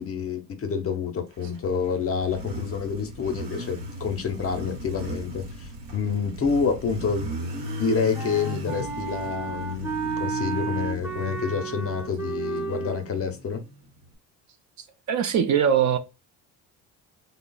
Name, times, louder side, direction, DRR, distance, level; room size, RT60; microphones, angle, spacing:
voice 1, 0.0-7.3 7.8-13.6, left 6 dB, 35° left, 0.6 m, -28 dB
Motorcycle, 1.4-14.1, left 1 dB, 80° right, 0.9 m, -37 dB
Wind instrument woodwind instrument, 8.1-13.0, right 5 dB, 5° right, 0.7 m, -32 dB
voice 2, 15.1-16.0, right 8 dB, 45° right, 0.4 m, -21 dB
3.1 x 2.0 x 2.2 m
supercardioid pair, 75°, 40 cm